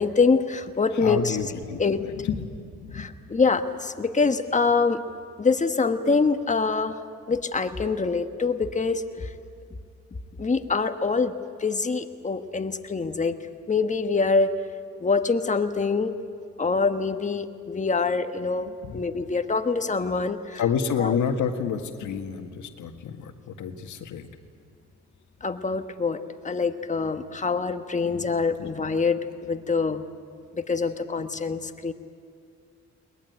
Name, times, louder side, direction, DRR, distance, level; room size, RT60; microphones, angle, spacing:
voice 1, 0.0-1.4 1.8-2.0 2.9-5.0 5.4-7.0 7.3-9.3 10.4-11.3 11.6-13.4 13.7-14.5 15.0-16.1 16.6-21.2 25.4-30.0 30.5-31.9, left 4 dB, 25° left, 8 dB, 1.4 m, -25 dB
voice 2, 0.9-2.5 2.8-3.4 18.8-19.0 20.6-24.3 28.0-28.3 28.6-28.7, left 7 dB, 75° left, 6 dB, 1.8 m, -29 dB
21.5 x 20.0 x 9.4 m, 2.3 s
cardioid pair, 90°, 30 cm